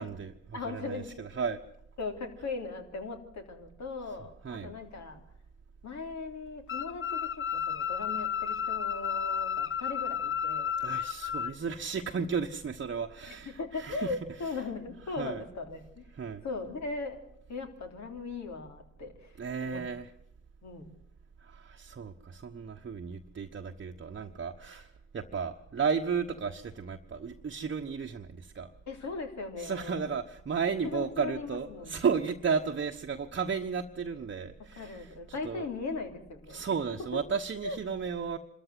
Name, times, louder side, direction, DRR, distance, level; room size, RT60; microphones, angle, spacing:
voice 1, 0.0-1.6 4.4-4.7 10.8-14.1 15.2-15.4 16.1-16.4 19.4-20.1 21.4-28.7 29.6-35.1 35.4-35.6 36.5-38.4, right 6 dB, 40° right, 4 dB, 1.1 m, -34 dB
voice 2, 0.5-1.3 2.0-5.2 5.8-10.7 13.3-16.0 16.4-17.2 17.5-19.8 20.6-20.9 28.9-30.0 30.8-32.0 34.7-36.6 37.6-37.8, left 3 dB, 60° left, 4 dB, 3.3 m, -38 dB
sound 1, 6.7-11.5, left 8 dB, 40° left, 0.9 m, -32 dB
25.5 x 13.5 x 7.8 m, 0.76 s
hypercardioid pair, 40°, 31 cm